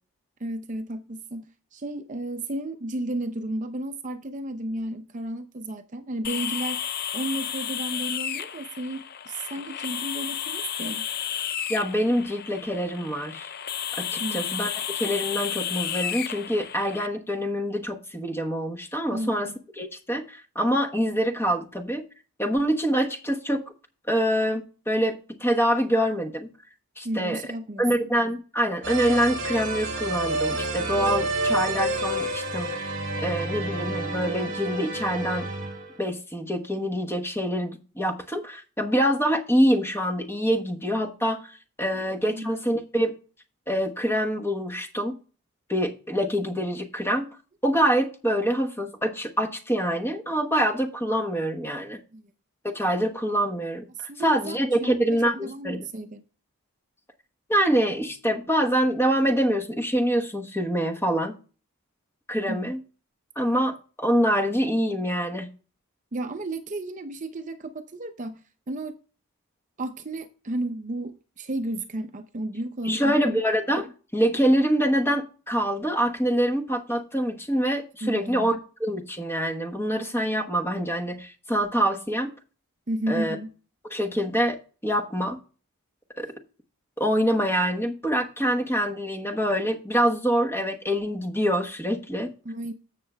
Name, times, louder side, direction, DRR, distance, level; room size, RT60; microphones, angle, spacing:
voice 1, 0.4-1.4 1.7-11.0 14.2-14.7 19.1-19.6 27.0-28.1 41.9-42.5 52.1-52.3 54.0-56.2 62.5-62.7 66.1-68.4 68.7-69.0 69.8-73.4 78.0-78.6 82.9-83.5 92.4-92.7, right 1 dB, 35° right, 0.6 m, -33 dB
sound 1, 6.2-17.1, left 9 dB, 45° left, 0.5 m, -32 dB
voice 2, 11.7-13.5 13.9-14.7 14.9-19.5 19.8-22.0 22.4-23.6 24.1-26.5 27.0-27.4 27.8-32.9 33.2-35.5 36.0-43.1 43.7-45.2 45.7-47.3 47.6-52.0 52.6-55.9 57.5-61.4 62.3-62.8 63.4-65.5 72.8-82.3 83.1-83.3 83.9-84.6 84.8-85.4 86.2-86.3 87.0-92.3, equal, 10° left, 1.1 m, -25 dB
sound 2, 28.8-36.0, right 1 dB, 55° right, 2.4 m, -29 dB
15.0 x 6.5 x 2.3 m
head